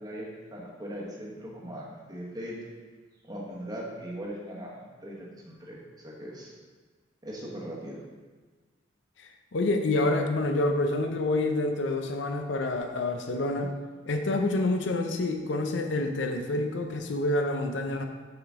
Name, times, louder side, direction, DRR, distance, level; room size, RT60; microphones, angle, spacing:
voice 1, 0.0-2.6 3.2-6.5 7.2-8.0, equal, 20° right, -3 dB, 1.1 m, -39 dB
voice 2, 9.2-13.7 14.1-18.0, left 2 dB, 75° left, 5 dB, 0.6 m, -28 dB
6.2 x 5.0 x 3.6 m, 1.4 s
head